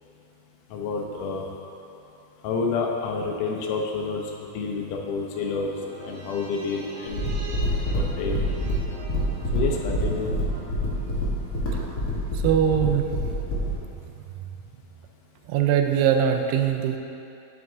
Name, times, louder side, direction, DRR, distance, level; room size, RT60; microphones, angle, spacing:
voice 1, 0.7-1.5 2.4-4.3 4.5-5.7 6.0-7.3 7.9-8.4 9.5-10.3, left 4 dB, 85° left, 0 dB, 1.8 m, -29 dB
sound 1, 5.3-11.9 12.2-12.3, right 3 dB, 70° right, 2.1 m, -42 dB
sound 2, 7.1-13.8, equal, 55° left, 1.0 m, -27 dB
voice 2, 12.4-13.1 15.5-17.0, right 9 dB, 90° right, 5 dB, 2.7 m, -21 dB
11.0 x 6.0 x 3.8 m, 2.8 s
omnidirectional pair, 4.6 m